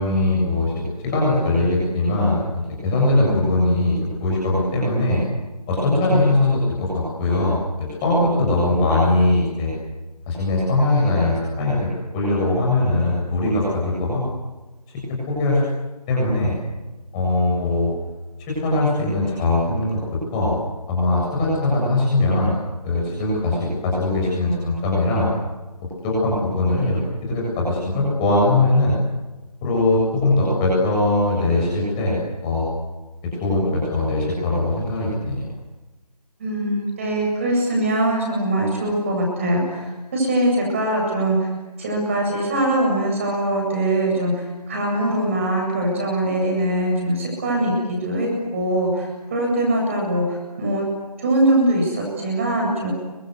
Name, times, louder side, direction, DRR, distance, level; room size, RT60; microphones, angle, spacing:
voice 1, 0.0-2.4 2.8-3.9 4.2-5.2 5.7-9.7 10.3-11.9 12.1-14.2 14.9-15.6 16.1-16.5 17.1-17.9 18.5-20.0 20.3-20.5 20.9-22.5 22.8-25.3 26.0-29.0 29.6-32.2 32.4-32.6 33.4-35.5, left 2 dB, 10° left, -4 dB, 7.4 m, -20 dB
voice 2, 36.4-41.5 41.8-50.8 51.2-52.9, right 1 dB, 20° right, 0 dB, 8.0 m, -22 dB
29.0 x 25.5 x 8.2 m, 1.1 s
figure-of-eight pair, 170°, 21 cm